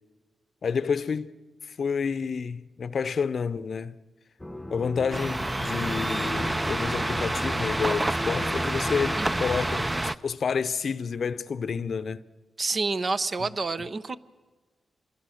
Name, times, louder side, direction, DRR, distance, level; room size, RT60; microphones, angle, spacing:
voice 1, 0.6-1.3 1.6-4.0 4.7-12.2 13.4-13.5, left 6 dB, 65° left, 0.7 m, -29 dB
sound 1, 4.4-10.0, left 1 dB, 10° left, 0.9 m, -37 dB
sound 2, 5.1-10.2, right 1 dB, 20° right, 0.6 m, -28 dB
voice 2, 12.6-14.2, right 3 dB, 50° right, 0.8 m, -28 dB
26.0 x 22.0 x 6.5 m
cardioid pair, 70°, 0 cm